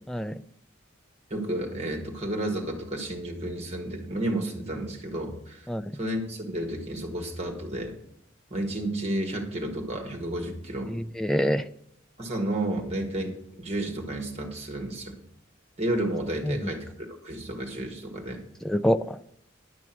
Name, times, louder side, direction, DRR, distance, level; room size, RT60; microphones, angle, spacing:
voice 1, 0.1-0.4 5.7-5.8 10.9-11.7 16.4-16.7 18.6-19.2, equal, 5° left, 9 dB, 0.3 m, -26 dB
voice 2, 1.3-5.7 6.0-8.0 8.5-10.9 12.2-13.3 13.6-15.1 15.8-18.4, right 1 dB, 35° right, 3 dB, 1.7 m, -31 dB
11.0 x 6.1 x 6.0 m, 0.72 s
head